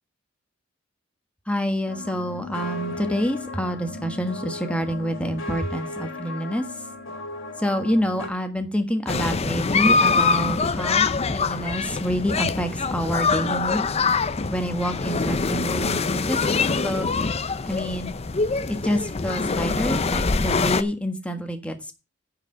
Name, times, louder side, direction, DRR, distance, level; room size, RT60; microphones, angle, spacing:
voice 1, 1.5-6.6 7.6-13.9 14.5-16.4 16.8-17.1 17.6-18.1 18.7-21.9, equal, 5° left, 6 dB, 1.4 m, -27 dB
sound 1, 1.9-8.3, left 2 dB, 80° left, 2.6 m, -36 dB
sound 2, 9.1-20.8, left 4 dB, 30° left, 0.6 m, -24 dB
9.7 x 5.0 x 7.6 m, 0.29 s
head